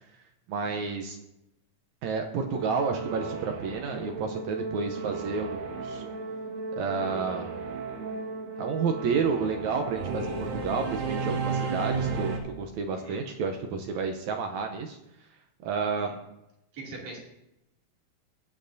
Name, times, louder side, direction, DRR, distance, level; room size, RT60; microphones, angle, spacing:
voice 1, 0.5-1.2 2.0-6.1 6.7-7.5 8.6-15.0 15.6-16.1, right 5 dB, 70° right, 5 dB, 1.8 m, -30 dB
Singing / Musical instrument, 2.5-12.4, right 4 dB, 90° right, 3.2 m, -34 dB
voice 2, 12.9-13.2 16.0-16.2 16.7-17.2, right 3 dB, 55° right, -3 dB, 3.7 m, -43 dB
21.0 x 7.7 x 2.7 m, 0.86 s
omnidirectional pair, 3.9 m